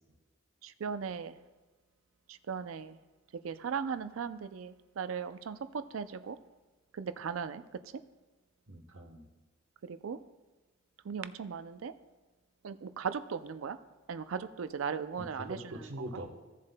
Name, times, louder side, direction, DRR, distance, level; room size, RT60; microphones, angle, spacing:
voice 1, 0.6-1.3 2.5-2.9 3.4-6.4 7.0-7.6 9.8-10.2 11.1-11.9 12.6-13.8 14.1-15.6, right 6 dB, 80° right, 12 dB, 0.4 m, -37 dB
voice 2, 8.7-9.3 15.2-16.3, right 1 dB, 65° right, 4 dB, 1.1 m, -42 dB
16.0 x 7.3 x 2.2 m, 1.2 s
head